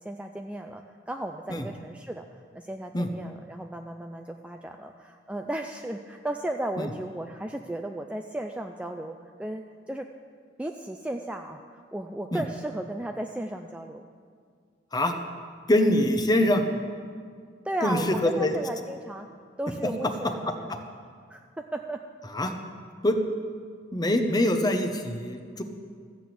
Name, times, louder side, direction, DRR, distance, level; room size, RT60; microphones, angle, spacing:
voice 1, 0.0-2.3 2.5-10.1 10.6-14.0 17.6-19.3 19.6-20.8 21.3-22.0, right 1 dB, 5° right, 4 dB, 0.4 m, -35 dB
voice 2, 15.7-16.6 17.8-18.5 22.3-22.5 23.0-23.2 23.9-25.6, left 1 dB, 20° left, 6 dB, 0.8 m, -24 dB
14.0 x 6.0 x 8.4 m, 2.1 s
head